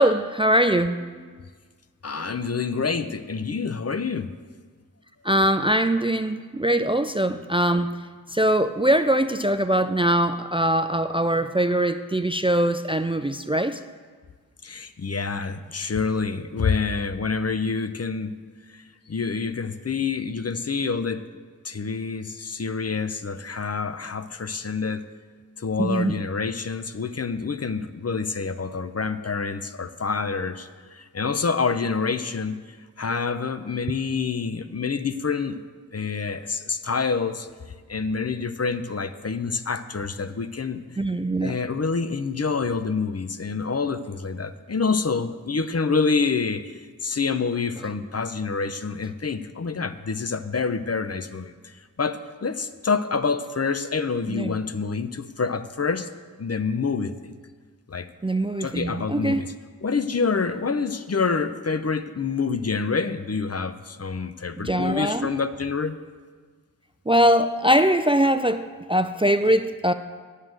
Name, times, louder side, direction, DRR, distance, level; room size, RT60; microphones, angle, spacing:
voice 1, 0.0-1.4 5.2-7.9 8.3-13.8 25.8-26.1 41.0-41.6 54.3-54.6 58.2-59.4 64.6-65.3 67.1-69.9, right 1 dB, 15° right, 10 dB, 0.3 m, -22 dB
voice 2, 2.0-4.3 14.6-18.3 18.7-21.2 21.6-25.0 25.6-32.6 33.0-35.6 35.9-37.5 37.9-40.8 41.4-56.1 56.4-57.1 57.9-58.1 58.6-59.5 59.8-66.0, left 5 dB, 45° left, 11 dB, 0.6 m, -27 dB
9.3 x 6.5 x 7.5 m, 1.5 s
wide cardioid pair, 45°, 35 cm